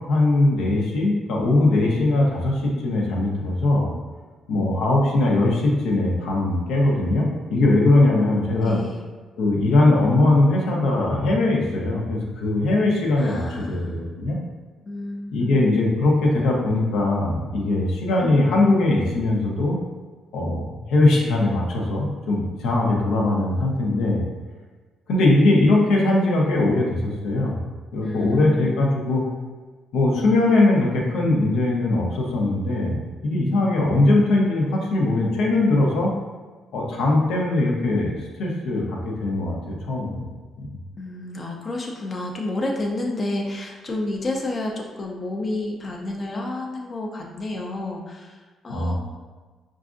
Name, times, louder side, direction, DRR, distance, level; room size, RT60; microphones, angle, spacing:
voice 1, 0.1-3.9 4.5-8.8 9.4-14.4 15.3-19.8 20.3-24.2 25.1-27.6 27.9-29.2 29.9-33.0 33.2-36.1 36.7-40.2 40.6-40.7 48.7-48.9, left 2 dB, 85° left, -2 dB, 0.6 m, -20 dB
voice 2, 8.6-9.1 13.2-14.1 14.8-15.8 28.0-28.8 41.0-48.9, left 2 dB, 35° left, 0 dB, 0.5 m, -30 dB
4.7 x 2.4 x 2.5 m, 1.4 s
cardioid pair, 90°, 0 cm